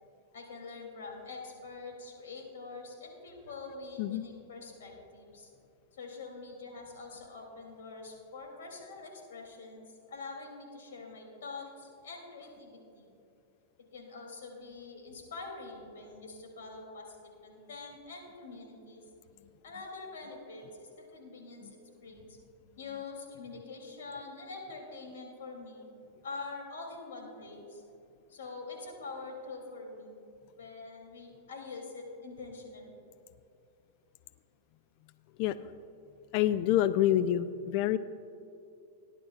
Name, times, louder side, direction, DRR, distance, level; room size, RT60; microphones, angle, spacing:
voice 1, 0.3-5.5 5.9-13.1 13.9-19.0 19.6-22.4 22.8-25.9 26.2-27.8 28.3-30.1 30.6-33.0, left 3 dB, 85° left, 1 dB, 2.8 m, -45 dB
voice 2, 36.3-38.0, left 12 dB, 50° left, 14 dB, 0.3 m, -27 dB
18.0 x 10.5 x 2.4 m, 2.6 s
hypercardioid pair, 130°, 0 cm